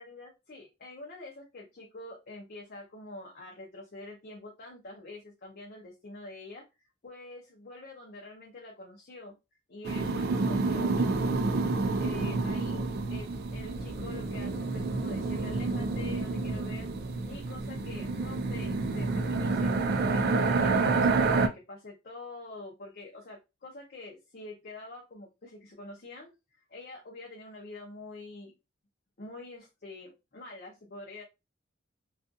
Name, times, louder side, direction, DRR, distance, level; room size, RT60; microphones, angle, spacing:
voice 1, 0.0-6.6 7.0-9.3 9.7-16.9 17.3-19.8 20.1-26.3 26.6-28.5 29.2-31.2, left 2 dB, 50° left, -1 dB, 0.6 m, -46 dB
sound 1, 9.8-21.5, right 3 dB, 55° right, 0.3 m, -29 dB
2.4 x 2.4 x 2.5 m, 0.25 s
head